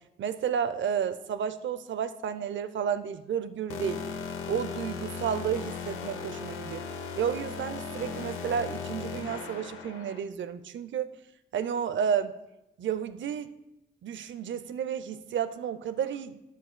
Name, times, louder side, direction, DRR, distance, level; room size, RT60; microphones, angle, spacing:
voice 1, 0.2-4.0 4.5-6.8 7.2-11.1 11.5-12.3 12.8-13.5 14.0-16.4, right 8 dB, 65° right, 12 dB, 0.6 m, -31 dB
sound 1, 3.7-10.2, left 5 dB, 85° left, 0.7 m, -37 dB
12.0 x 7.1 x 2.2 m, 0.94 s
supercardioid pair, 45°, 21 cm